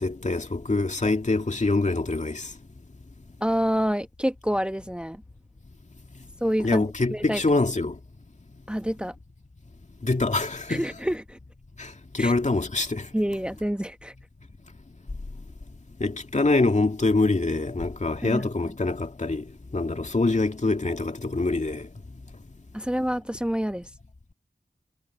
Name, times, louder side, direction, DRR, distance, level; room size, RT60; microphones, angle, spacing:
voice 1, 0.0-2.5 6.6-7.9 10.0-10.8 11.8-13.1 16.0-19.4 19.7-21.8, left 2 dB, 50° left, 2.3 m, -25 dB
voice 2, 3.4-5.2 6.4-6.8 7.1-7.4 8.7-9.1 10.7-11.4 12.2-12.3 13.1-14.1 18.2-18.4 22.7-23.9, equal, 5° right, 1.2 m, -27 dB
cardioid pair, 40°, 16 cm